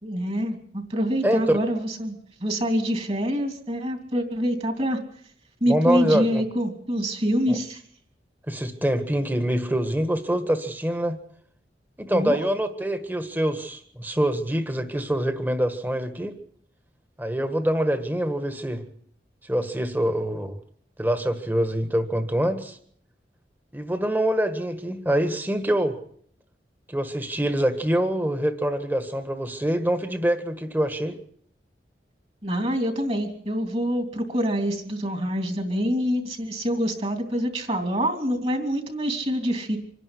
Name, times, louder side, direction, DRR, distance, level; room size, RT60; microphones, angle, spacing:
voice 1, 0.0-5.0 5.6-7.8 12.1-12.4 32.4-39.8, equal, 35° right, 5 dB, 3.0 m, -26 dB
voice 2, 1.2-1.6 5.7-6.4 7.5-7.6 8.5-11.2 12.0-16.4 17.2-18.8 19.4-20.6 21.0-22.8 23.7-26.0 26.9-31.2, right 1 dB, 10° right, 8 dB, 1.7 m, -25 dB
26.0 x 11.0 x 9.9 m, 0.63 s
head